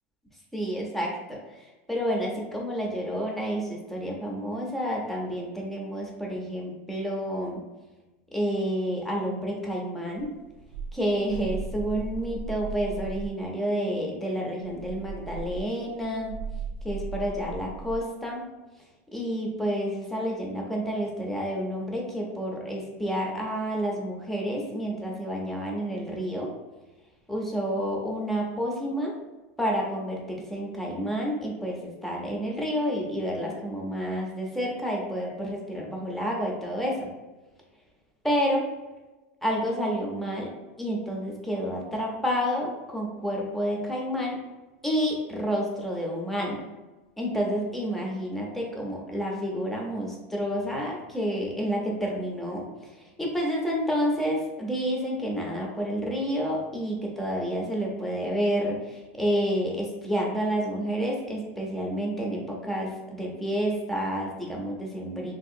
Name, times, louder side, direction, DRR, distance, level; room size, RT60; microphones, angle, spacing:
voice 1, 0.5-7.6 8.3-10.3 10.9-16.3 16.8-18.4 19.1-26.5 27.3-29.1 29.6-37.1 38.2-38.7 39.4-40.5 40.8-44.4 44.8-46.6 47.2-65.3, equal, 5° left, -2 dB, 0.5 m, -29 dB
sound 1, 10.2-13.4 14.6-18.1, right 4 dB, 50° right, 0.3 m, -37 dB
3.3 x 2.7 x 2.5 m, 1.1 s
supercardioid pair, 160°, 7 cm